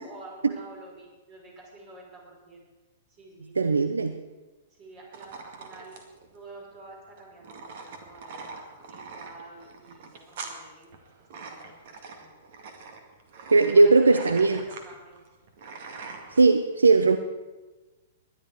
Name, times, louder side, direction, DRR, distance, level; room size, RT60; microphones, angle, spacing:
voice 1, 0.0-2.7 3.1-3.5 4.7-6.0 6.3-10.9 11.2-12.3 13.7-15.2, right 2 dB, 35° right, -1 dB, 5.7 m, -48 dB
voice 2, 3.6-4.2 13.5-14.6 16.3-17.2, right 3 dB, 80° right, 10 dB, 0.6 m, -19 dB
sound 1, 5.1-16.4, right 4 dB, 50° right, 2.1 m, -43 dB
20.0 x 11.0 x 4.7 m, 1.2 s
figure-of-eight pair, 110°, 0 cm